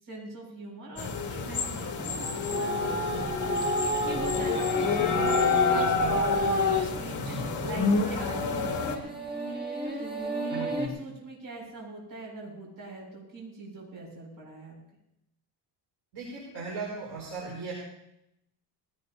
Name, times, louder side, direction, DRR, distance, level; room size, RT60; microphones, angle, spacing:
voice 1, 0.0-3.3 4.0-7.2 7.6-9.1 10.0-14.8, right 2 dB, 50° right, -3 dB, 7.3 m, -42 dB
sound 1, 1.0-8.9, left 4 dB, 45° left, 2.1 m, -29 dB
sound 2, 2.5-10.9, left 1 dB, 20° right, 2.4 m, -30 dB
voice 2, 10.5-10.9 16.1-17.7, right 3 dB, 65° right, -5 dB, 5.0 m, -37 dB
19.5 x 18.0 x 2.8 m, 0.83 s
cardioid pair, 160°, 43 cm